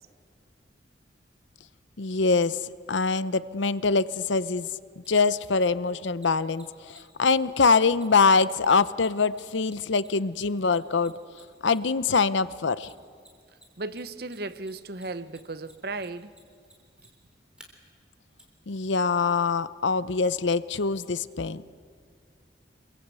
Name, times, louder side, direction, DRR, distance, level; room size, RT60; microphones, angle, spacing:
voice 1, 2.0-4.7 5.0-11.2 11.6-12.9 18.7-21.6, left 4 dB, 80° left, 0.7 m, -24 dB
Mechanisms, 5.0-5.1 6.2-12.0 12.8-13.6 13.9-17.7 18.4-18.5, right 1 dB, 5° right, 3.5 m, -54 dB
voice 2, 13.8-16.4, right 2 dB, 55° right, 0.9 m, -35 dB
27.5 x 22.5 x 8.3 m
head